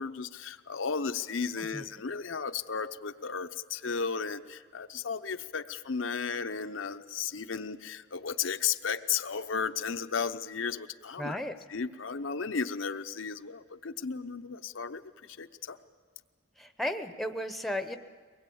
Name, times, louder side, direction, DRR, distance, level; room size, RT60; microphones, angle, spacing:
voice 1, 0.0-11.4 11.7-15.8, left 6 dB, 80° left, 8 dB, 0.8 m, -34 dB
voice 2, 11.2-11.5 16.6-18.0, left 1 dB, ahead, 8 dB, 0.8 m, -34 dB
23.5 x 20.0 x 8.6 m, 1.5 s
head